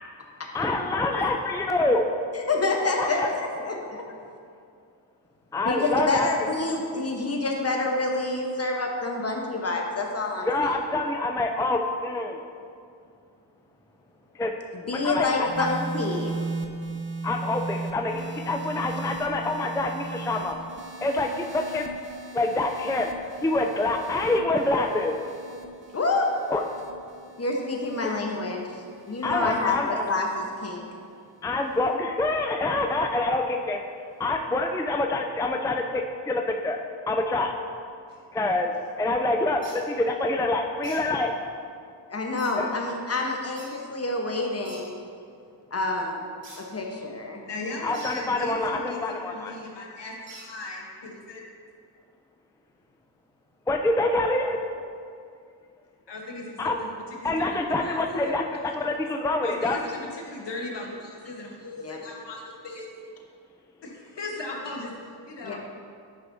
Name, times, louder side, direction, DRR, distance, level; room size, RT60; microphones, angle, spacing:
voice 1, 0.5-2.0 3.0-3.3 5.5-6.5 10.4-12.4 14.3-14.5 15.0-15.7 17.2-20.6 21.0-21.8 22.3-23.1 23.4-25.2 26.5-26.6 28.0-28.1 29.2-30.0 31.4-33.8 34.2-36.8 37.1-37.5 38.3-41.3 42.6-42.7 47.8-49.5 53.7-54.6 56.6-56.8 57.2-59.8, left 2 dB, 10° left, 3 dB, 0.4 m, -26 dB
voice 2, 2.3-4.0 5.6-10.5 14.7-16.3 25.9-26.3 27.4-28.6 29.0-30.8 42.1-45.0 45.7-46.2 46.6-47.4 61.8-62.0 65.4-65.6, left 2 dB, 35° left, 1 dB, 1.1 m, -27 dB
sound 1, 15.5-31.9 32.8-33.2, right 3 dB, 25° right, 0.8 m, -38 dB
sound 2, 39.6-39.8 40.8-41.0 42.4-42.5 43.6-43.7 44.6-44.8 46.4-46.6 47.9-48.2 50.3-50.5, right 2 dB, 85° right, 1.3 m, -44 dB
voice 3, 47.4-51.4 56.1-56.9 57.2-58.6 59.4-62.9 63.8-64.9 65.3-65.6, left 2 dB, 65° left, -1 dB, 1.2 m, -38 dB
8.9 x 5.4 x 2.7 m, 2.3 s
cardioid pair, 40°, 44 cm